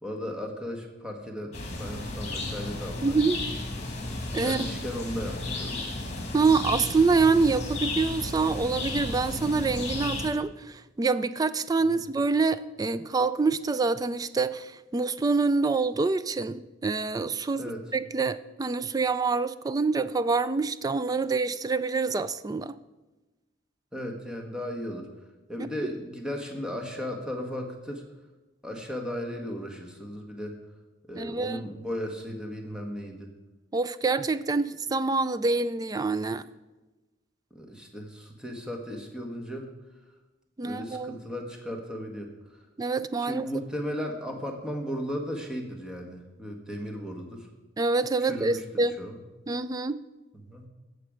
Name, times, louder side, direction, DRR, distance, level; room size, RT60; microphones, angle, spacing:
voice 1, 0.0-3.2 4.3-5.9 11.9-12.0 17.5-17.8 23.9-25.1 25.5-28.0 28.6-30.6 31.1-33.3 37.5-39.7 40.6-42.3 43.2-47.5 48.2-48.6 49.0-49.2 50.4-50.7, equal, 5° right, 1.3 m, -36 dB
sound 1, 1.5-10.3, left 2 dB, 40° left, 2.1 m, -34 dB
voice 2, 3.0-3.4 4.3-4.7 6.3-17.6 17.9-22.7 25.6-25.7 31.2-31.6 33.7-36.4 40.6-41.2 42.8-43.5 47.8-49.0 49.5-50.0, right 4 dB, 20° right, 0.3 m, -26 dB
16.0 x 6.7 x 5.0 m
head